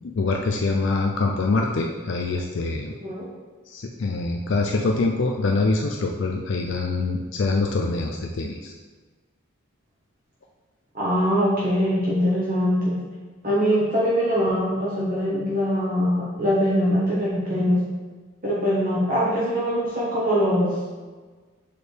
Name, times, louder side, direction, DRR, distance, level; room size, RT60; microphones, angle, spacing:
voice 1, 0.1-2.9 3.7-8.7, left 3 dB, 60° left, 1 dB, 0.4 m, -24 dB
voice 2, 2.9-3.2 10.9-13.0 13.4-17.8 18.4-20.7, equal, 40° right, -7 dB, 1.1 m, -22 dB
6.7 x 4.2 x 3.3 m, 1.4 s
head